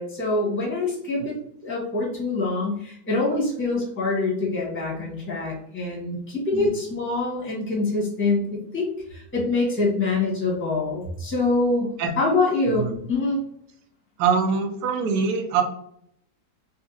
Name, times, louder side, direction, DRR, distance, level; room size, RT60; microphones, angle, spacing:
voice 1, 0.0-1.4 1.6-11.9 12.2-13.4, left 3 dB, 10° left, -3 dB, 0.8 m, -25 dB
voice 2, 12.7-13.0 14.2-15.6, right 6 dB, 75° right, 4 dB, 1.1 m, -23 dB
3.6 x 2.4 x 2.6 m, 0.70 s
omnidirectional pair, 1.9 m